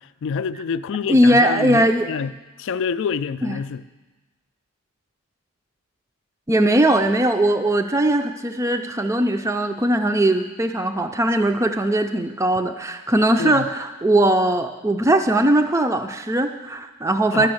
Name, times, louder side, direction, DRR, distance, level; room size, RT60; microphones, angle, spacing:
voice 1, 0.2-2.3 2.6-3.8 13.4-13.7 17.3-17.5, left 6 dB, 60° left, 0.3 m, -26 dB
voice 2, 1.1-2.1 3.4-3.5 6.5-17.5, right 1 dB, 15° right, 0.4 m, -19 dB
10.5 x 6.2 x 7.8 m
head